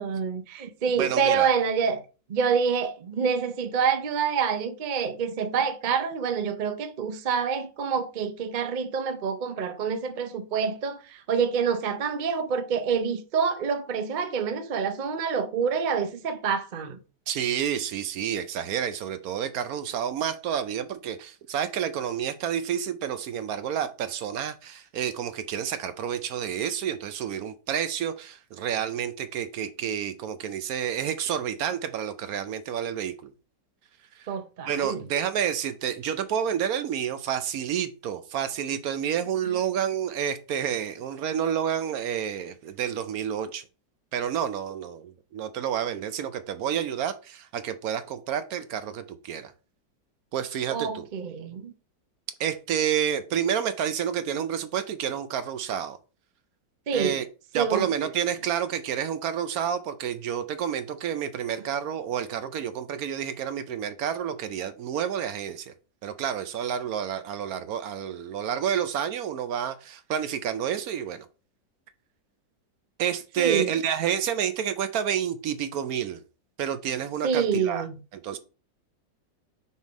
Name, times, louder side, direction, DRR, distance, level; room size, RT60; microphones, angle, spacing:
voice 1, 0.0-2.0 2.3-17.0 34.3-35.0 50.7-51.7 56.9-57.2 57.5-57.9 73.4-73.7 77.2-78.0, right 6 dB, 85° right, 0.4 m, -27 dB
voice 2, 1.0-1.5 17.3-33.3 34.2-34.3 34.7-43.6 44.1-49.5 50.3-51.1 52.4-56.0 56.9-57.2 57.5-65.7 66.0-71.3 73.0-76.2 76.6-77.8 78.1-78.4, right 9 dB, 70° right, 0.9 m, -29 dB
6.2 x 3.7 x 5.0 m
omnidirectional pair, 2.0 m